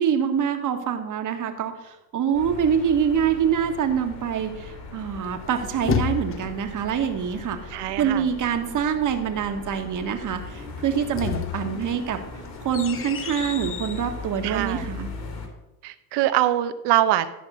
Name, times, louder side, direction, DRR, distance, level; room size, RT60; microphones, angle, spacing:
voice 1, 0.0-12.2 12.6-15.1, right 8 dB, 45° right, 6 dB, 1.5 m, -25 dB
sound 1, 2.3-15.5, left 3 dB, 55° left, 3.2 m, -39 dB
sound 2, 5.2-6.7 10.8-14.1, left 8 dB, 30° left, 0.6 m, -31 dB
voice 2, 7.7-8.3 14.4-14.9 15.8-17.3, right 13 dB, 65° right, 11 dB, 0.9 m, -23 dB
13.0 x 5.3 x 6.2 m, 0.97 s
supercardioid pair, 100°, 44 cm